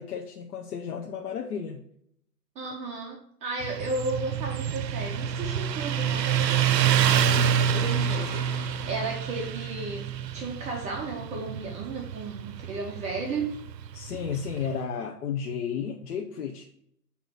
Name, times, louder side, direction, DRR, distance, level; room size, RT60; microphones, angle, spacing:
voice 1, 0.0-1.8 13.9-16.6, left 7 dB, 65° left, 2 dB, 0.9 m, -33 dB
voice 2, 2.6-13.6, right 3 dB, 15° right, 0 dB, 0.5 m, -34 dB
Motorcycle, 3.6-14.7, right 8 dB, 90° right, 0.6 m, -27 dB
sound 1, 5.2-9.5, left 6 dB, 40° left, 1.0 m, -45 dB
8.3 x 3.0 x 5.6 m, 0.69 s
hypercardioid pair, 120°, 49 cm